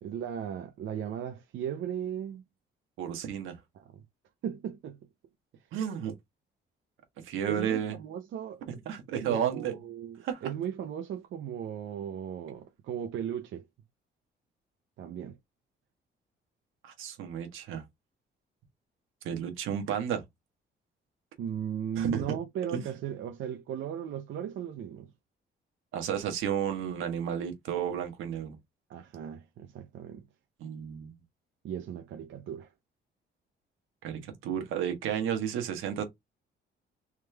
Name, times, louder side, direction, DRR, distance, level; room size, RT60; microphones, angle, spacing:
voice 1, 0.0-2.4 3.7-4.0 4.4-5.0 7.5-8.6 9.3-13.7 15.0-15.4 21.4-25.1 28.9-30.2 31.6-32.7, right 9 dB, 70° right, 0.7 m, -36 dB
voice 2, 3.0-3.6 5.7-6.1 7.2-7.9 8.7-9.7 10.2-10.5 16.8-17.8 19.2-20.2 22.0-22.4 22.7-22.8 25.9-28.6 30.6-31.1 34.0-36.0, right 9 dB, 90° right, 1.4 m, -32 dB
3.6 x 3.2 x 3.3 m
cardioid pair, 90°, 20 cm